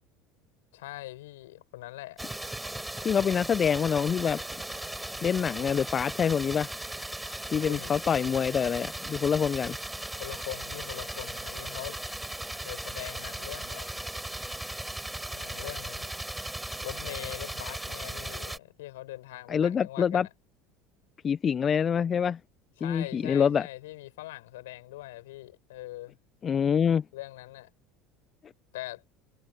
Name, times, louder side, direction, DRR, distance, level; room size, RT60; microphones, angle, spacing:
voice 1, 0.7-2.2 7.6-8.1 10.2-12.3 12.6-13.9 15.3-16.1 16.8-20.3 22.8-26.2 27.1-27.7 28.7-29.0, left 17 dB, 70° left, 6.2 m, -42 dB
sound 1, 2.2-18.6, right 1 dB, 5° right, 5.9 m, -37 dB
voice 2, 3.0-4.4 5.2-6.7 7.5-9.8 19.5-20.3 21.2-22.4 22.8-23.7 26.4-27.0, left 7 dB, 35° left, 1.0 m, -26 dB
figure-of-eight pair, 70°, 0 cm